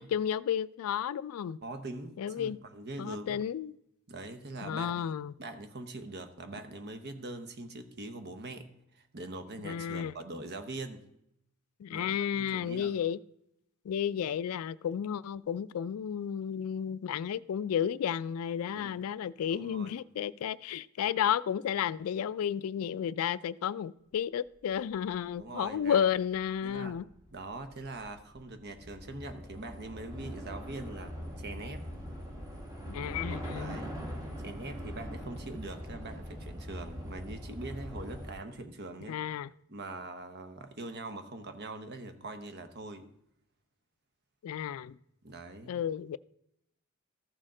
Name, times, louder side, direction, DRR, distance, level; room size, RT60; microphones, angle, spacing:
voice 1, 0.0-1.6 2.2-2.6 3.0-3.7 4.6-5.3 9.6-10.1 11.8-13.2 13.9-27.0 32.9-33.8 39.1-39.5 44.4-45.0 45.7-46.2, left 8 dB, 70° left, 0.3 m, -32 dB
voice 2, 1.6-3.4 4.1-5.0 5.4-8.7 8.9-11.0 11.9-12.9 18.7-18.9 19.5-20.0 25.4-26.0 26.6-27.0 27.3-31.8 33.5-34.0 34.4-39.2 39.7-43.1 45.2-45.7, right 2 dB, 50° right, 0.9 m, -43 dB
Train / Subway metro underground, 25.0-25.1 25.3-38.3, equal, 15° right, 1.8 m, -42 dB
14.0 x 6.4 x 3.8 m
head